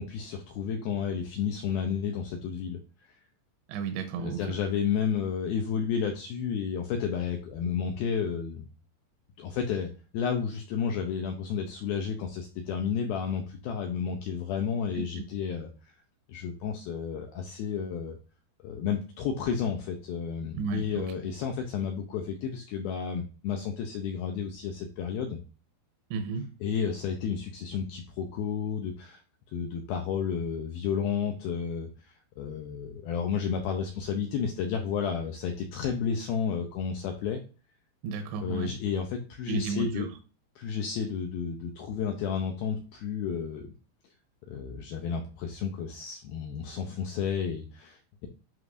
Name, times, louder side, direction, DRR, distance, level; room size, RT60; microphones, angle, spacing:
voice 1, 0.0-2.8 3.1-3.2 4.2-8.7 9.4-15.9 16.3-18.2 18.6-25.4 26.6-29.2 29.5-37.4 38.4-40.1 40.6-43.7 44.5-48.3, left 7 dB, 85° left, 3 dB, 2.1 m, -32 dB
voice 2, 3.7-4.6 14.9-15.0 20.5-21.1 26.1-26.5 38.0-38.8 39.5-40.2, right 5 dB, 85° right, 5 dB, 2.8 m, -33 dB
11.0 x 3.7 x 2.5 m, 0.35 s
omnidirectional pair, 5.1 m